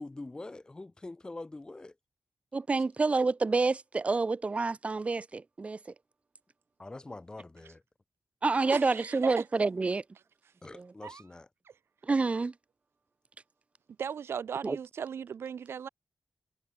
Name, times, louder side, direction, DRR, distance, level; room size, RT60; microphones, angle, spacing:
voice 1, 0.0-1.9 6.8-7.8 10.6-11.5, left 2 dB, 20° left, 1.5 m, -44 dB
voice 2, 2.5-5.8 8.4-10.0 10.7-10.9 12.0-12.5 14.6-14.8, right 3 dB, 30° right, 2.4 m, -28 dB
voice 3, 8.7-9.4 11.0-11.2 11.7-11.8 14.0-15.9, right 7 dB, 80° right, 2.2 m, -37 dB
wide cardioid pair, 150°, 4 cm